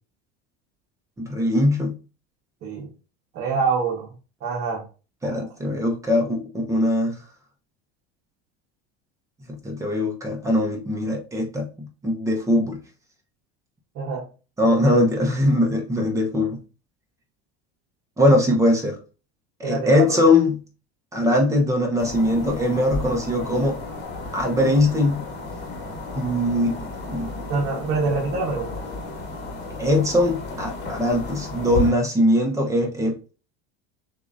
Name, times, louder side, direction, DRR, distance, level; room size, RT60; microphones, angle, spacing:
voice 1, 1.2-1.9 5.2-7.2 9.6-12.8 14.6-16.6 18.2-19.0 19.6-20.6 21.1-23.8 24.3-25.2 26.1-26.8 27.1-27.3 29.8-33.2, left 1 dB, 10° right, 1 dB, 0.9 m, -21 dB
voice 2, 3.3-4.1 4.4-4.8 5.2-5.4 13.9-14.3 14.8-14.9 19.6-20.2 27.5-28.8, right 4 dB, 45° right, -3 dB, 1.3 m, -26 dB
sound 1, 22.0-31.9, left 2 dB, 30° left, 1.3 m, -33 dB
6.4 x 2.6 x 2.6 m, 0.34 s
cardioid pair, 150°, 31 cm